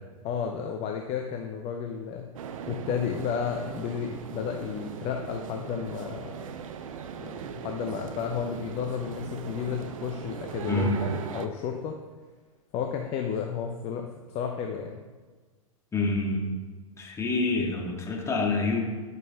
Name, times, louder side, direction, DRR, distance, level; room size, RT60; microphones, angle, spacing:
voice 1, 0.2-2.3 2.7-6.5 7.2-12.0 12.7-15.0, left 7 dB, 35° left, 3 dB, 0.8 m, -32 dB
sound 1, 2.4-11.5, right 7 dB, 65° right, 0.7 m, -39 dB
voice 2, 15.9-16.5 17.0-18.8, left 3 dB, 15° left, -1 dB, 1.9 m, -27 dB
10.0 x 6.7 x 3.6 m, 1.4 s
hypercardioid pair, 105°, 18 cm